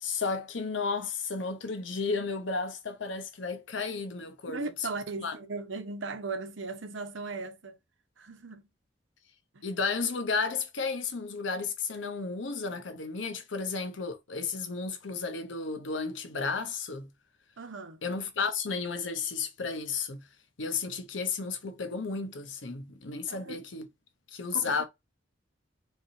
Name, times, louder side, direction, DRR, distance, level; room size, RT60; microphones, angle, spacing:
voice 1, 0.0-4.6 5.2-5.3 9.6-17.1 18.0-20.3 20.6-23.9 24.3-24.8, left 4 dB, 80° left, 0.8 m, -33 dB
voice 2, 4.4-7.8 8.2-8.6 9.5-9.6 17.6-18.0 23.3-23.6 24.5-24.8, right 3 dB, 90° right, 0.9 m, -38 dB
4.0 x 3.4 x 2.7 m
head